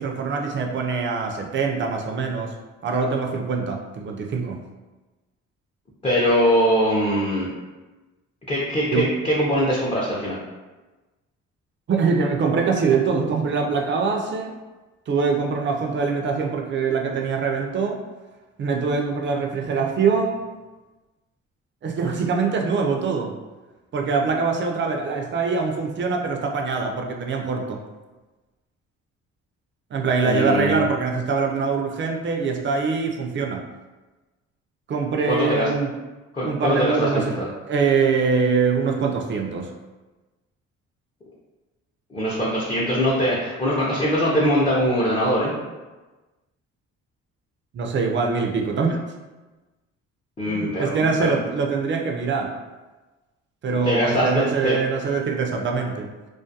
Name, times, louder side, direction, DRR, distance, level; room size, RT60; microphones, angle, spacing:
voice 1, 0.0-2.5 2.8-4.6 8.9-9.1 11.9-14.6 15.1-18.0 18.6-20.4 21.8-23.3 23.9-27.8 29.9-33.6 34.9-35.9 36.4-39.7 47.7-49.0 50.5-52.5 53.6-56.1, right 5 dB, 40° right, 2 dB, 0.4 m, -23 dB
voice 2, 6.0-7.5 8.5-10.4 30.2-30.9 35.3-35.7 36.3-37.5 42.1-45.5 50.4-51.4 53.7-54.8, equal, 20° left, -6 dB, 0.5 m, -22 dB
2.3 x 2.2 x 2.6 m, 1.2 s
cardioid pair, 90°, 30 cm